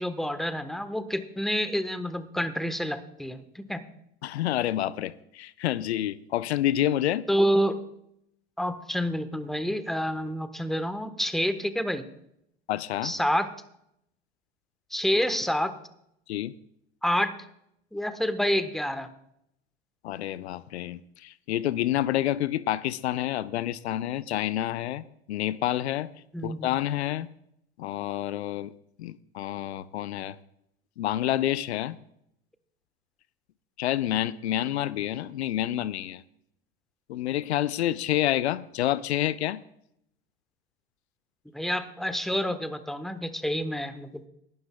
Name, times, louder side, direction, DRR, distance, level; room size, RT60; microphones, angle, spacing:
voice 1, 0.0-3.8 7.3-7.8 8.6-12.0 13.0-13.5 14.9-15.7 17.0-17.3 17.9-19.1 26.3-26.7 41.5-44.3, equal, ahead, 1.1 m, -28 dB
voice 2, 4.2-7.2 12.7-13.1 16.3-16.5 20.0-26.1 26.4-27.3 27.8-28.7 29.0-30.4 31.0-32.0 33.8-36.2 37.1-39.6, left 13 dB, 90° left, 0.5 m, -28 dB
19.5 x 12.0 x 2.3 m
hypercardioid pair, 85°, 32 cm